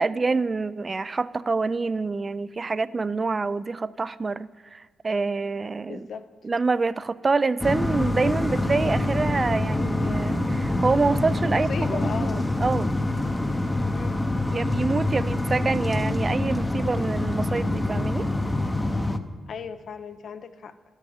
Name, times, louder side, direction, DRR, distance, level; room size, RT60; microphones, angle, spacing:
voice 1, 0.0-6.1 6.4-12.1 12.6-12.9 14.5-18.3, right 4 dB, 35° right, 0.3 m, -26 dB
voice 2, 5.9-6.3 11.5-12.4 13.9-14.3 19.5-20.7, left 6 dB, 65° left, 0.6 m, -36 dB
sound 1, 7.6-19.2, left 2 dB, 15° left, 0.7 m, -25 dB
12.0 x 6.3 x 5.4 m
supercardioid pair, 55°, 0 cm